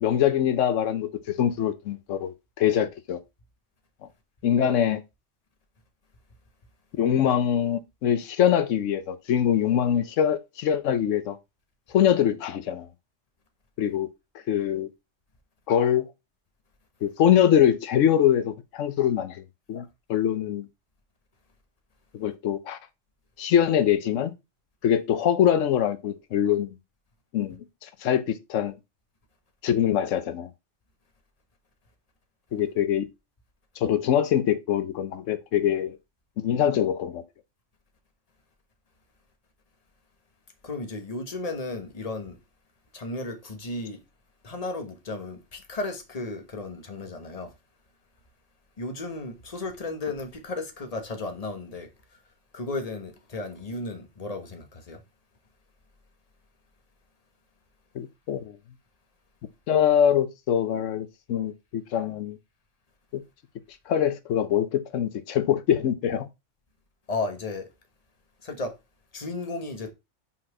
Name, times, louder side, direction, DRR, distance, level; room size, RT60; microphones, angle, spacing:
voice 1, 0.0-3.2 4.4-5.0 6.9-11.4 11.9-12.9 13.8-14.1 14.5-14.9 15.7-16.1 17.0-19.4 19.7-20.7 22.1-22.8 23.4-24.3 24.8-26.7 27.3-28.8 29.6-30.5 32.5-33.1 33.8-36.0 36.4-37.2 57.9-58.6 59.7-62.4 63.1-63.2 63.9-66.3, left 9 dB, 90° left, 1.1 m, -23 dB
voice 2, 40.6-42.4 42.9-44.0 44.4-47.5 48.8-51.9 52.5-55.0 67.1-67.7 68.4-68.7 69.1-69.9, left 2 dB, 30° left, 1.3 m, -34 dB
5.7 x 4.3 x 4.7 m
omnidirectional pair, 1.3 m